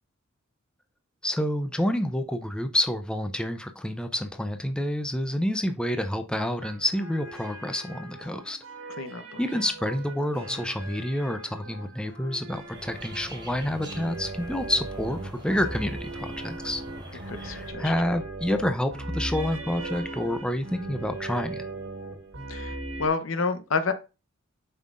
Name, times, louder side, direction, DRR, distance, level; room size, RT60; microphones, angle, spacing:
voice 1, 1.2-8.6 9.4-16.8 17.1-21.6, left 1 dB, 5° left, 0.5 m, -28 dB
sound 1, 6.6-23.1, right 2 dB, 75° right, 1.6 m, -39 dB
voice 2, 8.9-9.4 17.3-17.9 22.5-23.9, left 4 dB, 70° left, 0.9 m, -29 dB
sound 2, 12.7-17.7, right 1 dB, 25° right, 3.6 m, -43 dB
7.2 x 5.6 x 2.5 m
head